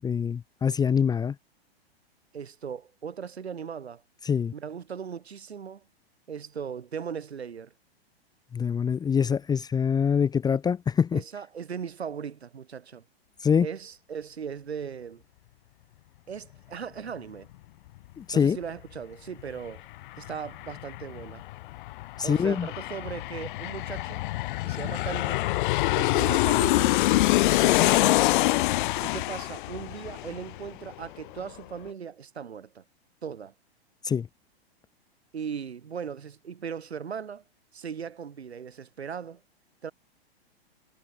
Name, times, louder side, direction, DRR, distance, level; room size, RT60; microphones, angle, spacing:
voice 1, 0.0-1.3 4.2-4.5 8.5-11.2 13.4-13.7 18.2-18.6 22.2-22.7 34.0-34.3, left 7 dB, 10° left, 0.8 m, -24 dB
voice 2, 2.3-4.0 4.5-5.8 6.3-7.7 11.1-13.0 13.6-15.2 16.3-17.5 18.3-19.8 20.2-21.4 22.2-24.2 24.6-25.4 25.9-26.9 27.5-28.4 29.0-32.8 33.2-33.5 35.3-37.4 37.7-39.4 39.8-39.9, right 7 dB, 80° right, 7.0 m, -38 dB
Aircraft, 19.4-19.5 19.8-31.1 31.4-31.5, left 18 dB, 50° left, 2.0 m, -25 dB
hypercardioid pair, 115°, 32 cm